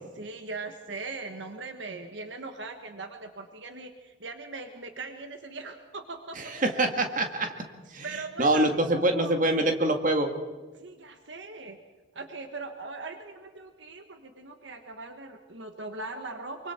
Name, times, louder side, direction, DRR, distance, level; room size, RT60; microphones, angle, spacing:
voice 1, 0.2-6.5 6.8-6.9 8.0-9.7 10.7-11.8 12.1-16.7, right 3 dB, 65° right, 6 dB, 1.4 m, -40 dB
voice 2, 6.4-7.5 7.9-10.3, right 1 dB, 40° right, 5 dB, 2.0 m, -25 dB
24.5 x 24.5 x 4.4 m, 1.3 s
head